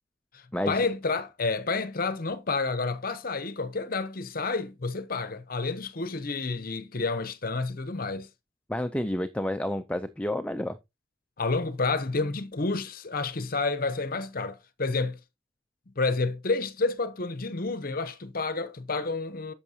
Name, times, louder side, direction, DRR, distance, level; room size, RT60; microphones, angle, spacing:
voice 1, 0.3-8.3 11.4-15.2 16.0-19.5, left 3 dB, 45° left, 0.8 m, -30 dB
voice 2, 8.7-10.8, left 1 dB, 5° left, 0.5 m, -30 dB
10.5 x 7.0 x 2.8 m
head